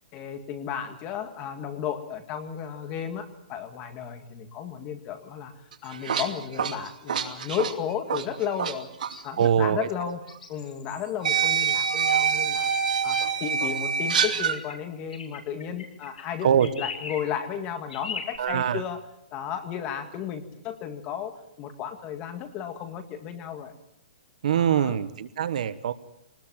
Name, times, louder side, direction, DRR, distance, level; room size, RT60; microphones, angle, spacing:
voice 1, 0.1-5.5 5.8-8.9 9.2-10.2 10.5-12.7 13.0-19.0 19.3-23.7 24.5-25.0, left 8 dB, 25° left, 8 dB, 2.0 m, -34 dB
sound 1, 5.7-8.7 9.0-9.2 10.3-10.4 11.2-14.6, right 6 dB, 75° right, 2.7 m, -25 dB
sound 2, 8.8-9.2 10.3-11.1 12.1-13.0 14.4-14.8 15.1-16.3 16.6-17.3 17.9-18.4, left 5 dB, 90° left, 6.4 m, -39 dB
voice 2, 9.4-10.1 16.4-16.7 18.4-18.8 24.4-25.9, right 9 dB, 60° right, 13 dB, 1.3 m, -23 dB
23.5 x 20.0 x 7.6 m, 0.74 s
hypercardioid pair, 165°, 4 cm